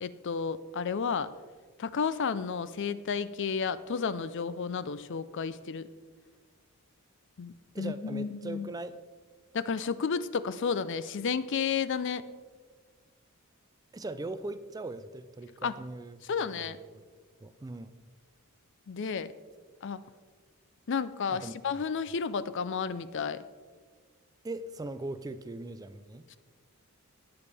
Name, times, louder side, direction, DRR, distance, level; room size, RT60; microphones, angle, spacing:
voice 1, 0.0-1.3 1.8-5.9 7.4-8.7 9.5-12.3 15.6-15.7 16.2-16.8 18.9-19.3 19.8-20.0 20.9-23.4, left 6 dB, 55° left, 15 dB, 0.4 m, -32 dB
voice 2, 7.7-9.0 13.9-17.0 17.4-17.9 21.3-21.5 24.4-26.2, right 2 dB, 15° right, 12 dB, 0.3 m, -40 dB
19.0 x 7.0 x 3.4 m, 1.5 s
head